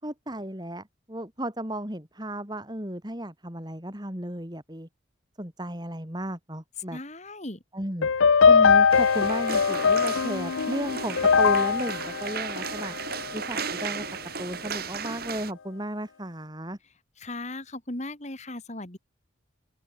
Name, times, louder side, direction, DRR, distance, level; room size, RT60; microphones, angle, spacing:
voice 1, 0.0-4.9 5.4-7.0 7.7-8.1 8.5-13.0 13.3-14.0 14.4-16.8, right 1 dB, 20° right, 3.9 m, -34 dB
voice 2, 6.9-7.6 17.2-19.0, left 2 dB, 35° left, 2.6 m, -37 dB
sound 1, 8.0-13.3, left 5 dB, 80° left, 0.7 m, -21 dB
sound 2, 8.9-15.5, right 6 dB, 50° right, 2.4 m, -35 dB
open air
head